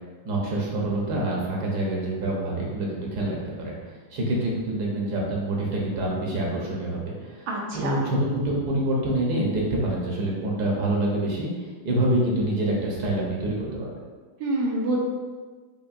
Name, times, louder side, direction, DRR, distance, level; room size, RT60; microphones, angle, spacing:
voice 1, 0.2-7.5 7.7-14.0, right 1 dB, 65° right, -3 dB, 1.3 m, -26 dB
voice 2, 7.5-8.0 14.4-15.0, right 1 dB, 85° right, -1 dB, 1.4 m, -26 dB
5.2 x 2.5 x 2.5 m, 1.4 s
omnidirectional pair, 2.0 m